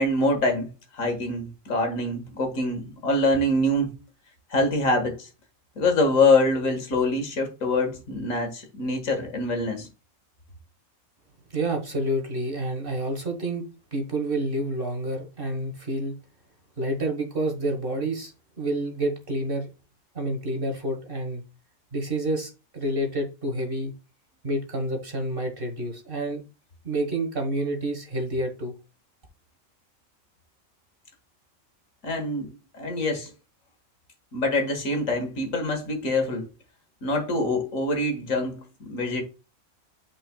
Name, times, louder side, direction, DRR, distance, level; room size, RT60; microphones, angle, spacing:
voice 1, 0.0-3.9 4.5-5.3 5.8-9.9 32.0-32.5 32.7-33.3 34.3-36.5 37.0-39.2, left 2 dB, 85° left, 2.0 m, -25 dB
voice 2, 11.5-13.6 13.9-16.2 16.8-19.7 20.1-21.4 21.9-23.9 24.4-26.4 26.8-28.7, right 1 dB, 45° right, 1.5 m, -28 dB
8.7 x 5.1 x 2.3 m
omnidirectional pair, 1.4 m